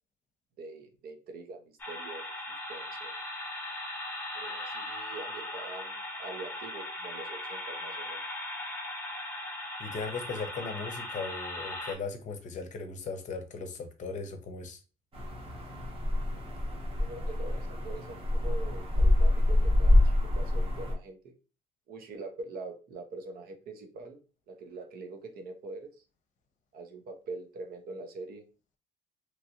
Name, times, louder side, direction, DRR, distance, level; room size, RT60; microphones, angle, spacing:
voice 1, 0.6-2.2 2.7-3.1 4.3-8.2 17.0-21.3 21.9-24.2 24.5-25.9 26.7-28.4, right 3 dB, 65° right, 0.8 m, -44 dB
sound 1, 1.8-11.9, left 1 dB, 10° left, 0.8 m, -38 dB
voice 2, 9.8-14.8, left 4 dB, 45° left, 0.7 m, -38 dB
sound 2, 15.1-20.9, left 1 dB, 35° right, 0.9 m, -26 dB
3.0 x 2.5 x 2.8 m
cardioid pair, 110°, 17 cm